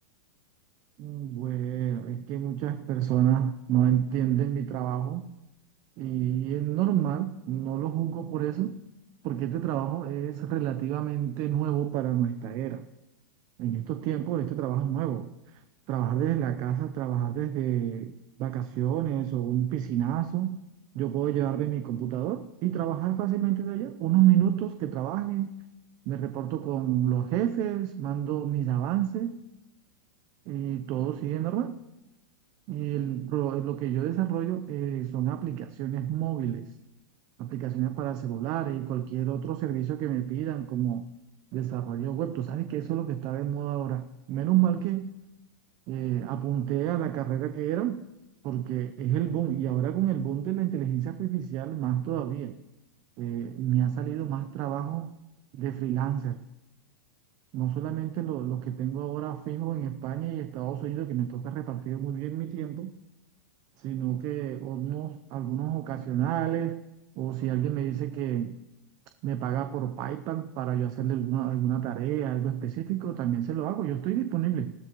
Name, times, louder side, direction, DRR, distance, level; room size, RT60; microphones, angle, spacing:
voice 1, 1.0-5.3 6.0-8.8 9.2-12.9 13.6-15.6 15.9-18.1 18.4-20.6 20.9-25.5 26.1-29.4 30.5-31.8 32.7-36.7 37.4-41.1 41.5-45.1 45.9-48.0 48.4-52.6 53.2-55.2 55.5-56.4 57.5-62.9 63.8-66.8 67.2-68.6 69.2-74.7, right 11 dB, 35° right, 9 dB, 0.6 m, -29 dB
19.5 x 13.5 x 3.1 m, 0.98 s
supercardioid pair, 150°, 11 cm